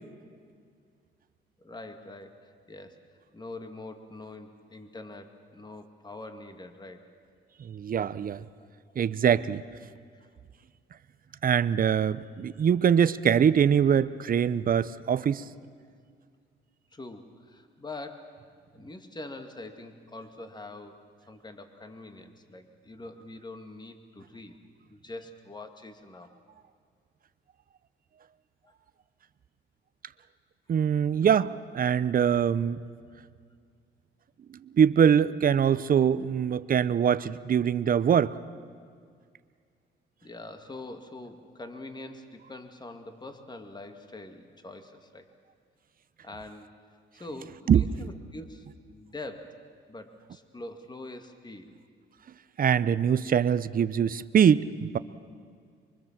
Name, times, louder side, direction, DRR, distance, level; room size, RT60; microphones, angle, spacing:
voice 1, 1.6-3.0 3.3-7.1 9.0-9.1 10.1-10.3 11.3-11.4 12.6-12.7 15.3-15.4 15.8-15.9 16.9-21.0 21.3-24.6 24.9-26.3 28.6-28.7 32.0-32.2 33.0-33.2 38.8-38.9 40.2-45.3 46.2-46.8 47.1-49.6 49.9-51.8, left 2 dB, 20° left, 7 dB, 2.1 m, -44 dB
voice 2, 7.6-8.4 9.0-9.6 11.4-15.4 30.7-32.8 34.7-38.3 47.7-47.8 52.6-55.0, right 8 dB, 45° right, 15 dB, 0.8 m, -23 dB
24.0 x 24.0 x 7.4 m, 2.1 s
cardioid pair, 90°, 20 cm